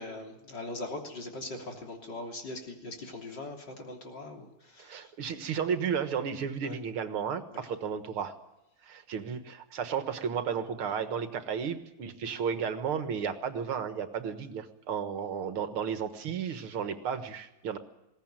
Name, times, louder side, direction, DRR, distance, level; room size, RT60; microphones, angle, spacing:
voice 1, 0.0-5.1 6.6-6.8 7.5-7.7, left 2 dB, 55° left, 2 dB, 3.9 m, -41 dB
voice 2, 4.8-8.3 8.8-17.8, right 7 dB, 80° right, 9 dB, 2.4 m, -33 dB
21.0 x 17.5 x 9.0 m, 0.92 s
omnidirectional pair, 2.3 m